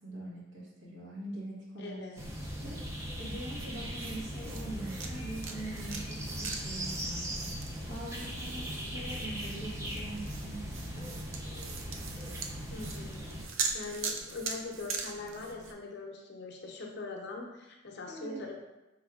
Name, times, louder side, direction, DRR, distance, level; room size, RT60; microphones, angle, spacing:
voice 1, 0.0-2.0 2.6-11.2 18.1-18.4, right 1 dB, 70° right, -6 dB, 1.4 m, -43 dB
voice 2, 1.8-2.3 12.7-13.3 13.7-18.5, left 3 dB, 60° left, 1 dB, 0.6 m, -42 dB
sound 1, 2.2-13.4, equal, 15° right, 0.5 m, -39 dB
sound 2, 3.6-15.7, right 5 dB, 85° right, 0.4 m, -42 dB
4.3 x 3.5 x 2.3 m, 1.0 s
head